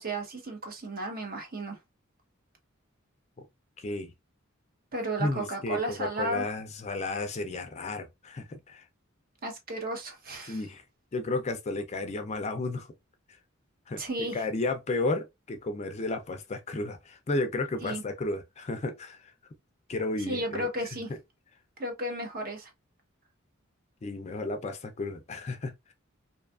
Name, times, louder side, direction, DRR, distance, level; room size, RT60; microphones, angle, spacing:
voice 1, 0.0-1.8 4.9-6.5 9.4-10.6 14.0-14.4 17.8-18.0 20.3-21.1 21.8-22.7, right 1 dB, 45° right, 0.8 m, -34 dB
voice 2, 3.8-4.1 5.2-8.8 10.5-10.8 11.1-12.9 13.9-19.2 19.9-20.7 24.0-25.9, left 2 dB, 35° left, 0.4 m, -33 dB
2.6 x 2.3 x 2.3 m
head